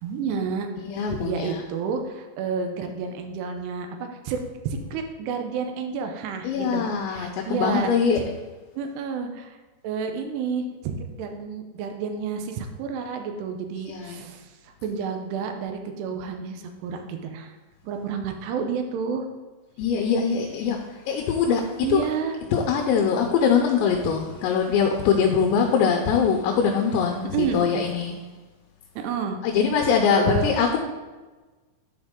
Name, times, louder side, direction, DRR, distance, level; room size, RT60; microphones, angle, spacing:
voice 1, 0.0-0.7 1.0-7.9 8.2-8.3 8.8-9.6 9.8-14.5 14.8-17.6 17.8-19.3 21.8-22.4 27.3-27.6 29.0-29.4 30.1-30.5, right 6 dB, 75° right, 5 dB, 2.7 m, -30 dB
voice 2, 0.8-1.6 6.4-8.2 13.9-14.2 19.8-20.8 21.1-22.0 22.5-28.1 29.4-30.8, left 6 dB, 85° left, 2 dB, 3.0 m, -22 dB
11.0 x 5.0 x 3.7 m, 1.3 s
omnidirectional pair, 5.2 m